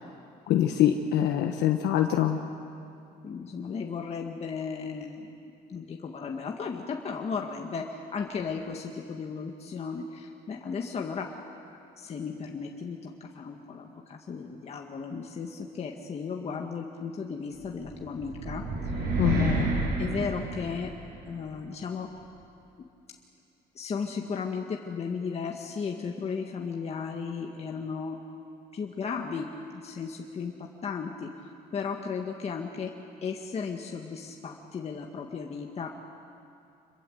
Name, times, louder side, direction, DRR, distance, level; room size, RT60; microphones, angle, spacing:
voice 1, 0.5-2.4 19.2-19.5, left 11 dB, 80° left, 4 dB, 1.3 m, -24 dB
voice 2, 3.2-5.3 5.7-11.4 12.0-19.7 20.0-20.9 21.3-22.1 23.8-28.2 28.7-31.3 31.7-32.9 33.2-36.0, left 5 dB, 40° left, 1 dB, 1.8 m, -35 dB
sound 1, 17.8-21.2, right 2 dB, 70° right, 6.1 m, -30 dB
26.5 x 22.0 x 8.0 m, 2.5 s
cardioid pair, 110°, 17 cm